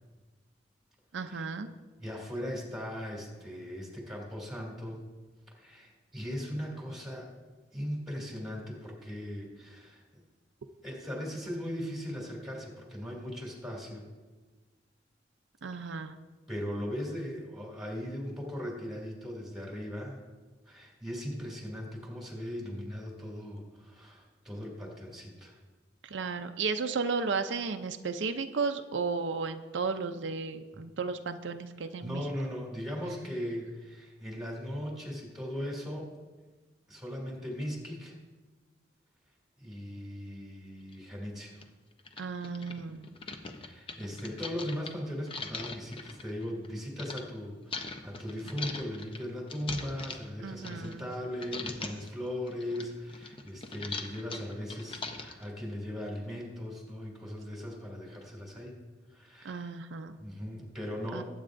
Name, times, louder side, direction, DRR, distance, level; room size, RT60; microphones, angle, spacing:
voice 1, 1.1-1.7 15.6-16.1 26.0-32.2 42.2-43.1 50.4-51.1 59.4-60.2 61.1-61.2, right 4 dB, 80° right, 7 dB, 0.5 m, -34 dB
voice 2, 2.0-5.1 5.5-7.3 7.7-10.0 10.8-14.0 16.5-20.2 20.7-25.6 30.7-30.9 32.0-36.1 36.9-38.1 39.6-41.6 43.6-58.8 59.1-59.7 60.2-61.2, equal, ahead, -1 dB, 2.5 m, -38 dB
sound 1, 40.9-41.0 41.6-41.7 42.0-47.2 47.7-51.2 51.4-52.1 52.5-55.5, left 4 dB, 30° left, 0.7 m, -41 dB
19.5 x 8.7 x 2.6 m, 1.3 s
head